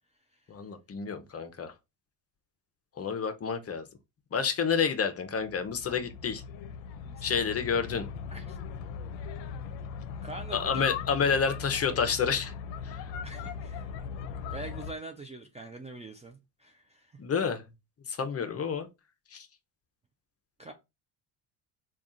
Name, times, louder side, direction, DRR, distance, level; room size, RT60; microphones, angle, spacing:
voice 1, 0.5-1.7 3.0-3.9 4.3-6.4 7.2-8.0 10.5-12.5 12.8-13.1 17.2-17.6 18.1-18.9 19.3-19.5, left 6 dB, 30° left, 0.7 m, -29 dB
sound 1, 5.2-14.9, left 6 dB, 75° left, 0.6 m, -39 dB
voice 2, 10.2-10.9 13.2-14.0 14.5-17.2 20.6-20.7, right 2 dB, 15° right, 0.4 m, -44 dB
3.5 x 2.4 x 3.8 m
supercardioid pair, 80°, 49 cm